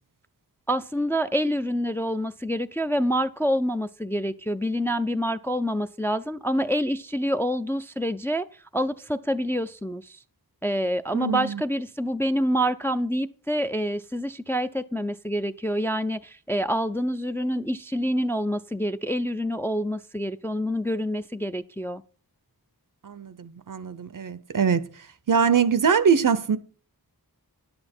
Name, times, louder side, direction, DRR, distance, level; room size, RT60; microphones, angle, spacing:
voice 1, 0.7-8.5 8.7-10.2 10.6-22.0, equal, 5° left, 0.4 m, -27 dB
voice 2, 11.1-11.6 23.0-24.8 25.3-26.6, right 6 dB, 55° right, 0.6 m, -23 dB
9.9 x 7.8 x 4.3 m
wide cardioid pair, 40°, 39 cm